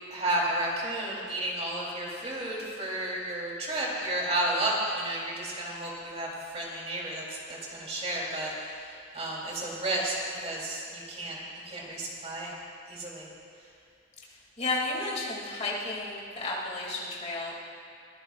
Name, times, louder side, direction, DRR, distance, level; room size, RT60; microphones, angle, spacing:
voice 1, 0.1-11.4 11.6-12.5 12.9-13.3, right 1 dB, 35° right, -4 dB, 3.4 m, -32 dB
voice 2, 14.6-17.6, left 2 dB, 35° left, -3 dB, 2.6 m, -32 dB
23.0 x 15.0 x 2.5 m, 2.4 s
head